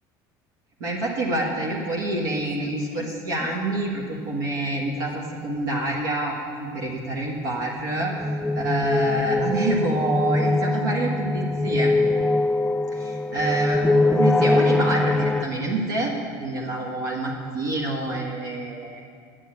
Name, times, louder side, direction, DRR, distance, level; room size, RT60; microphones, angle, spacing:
voice 1, 0.8-8.1 8.5-11.9 12.9-16.1 16.4-19.0, right 2 dB, 90° right, -2 dB, 1.5 m, -27 dB
sound 1, 2.7-2.8 3.0-3.1 3.4-3.5 7.7-15.4, left 2 dB, 10° left, 0.3 m, -22 dB
9.6 x 6.6 x 8.2 m, 2.2 s
supercardioid pair, 90°, 10 cm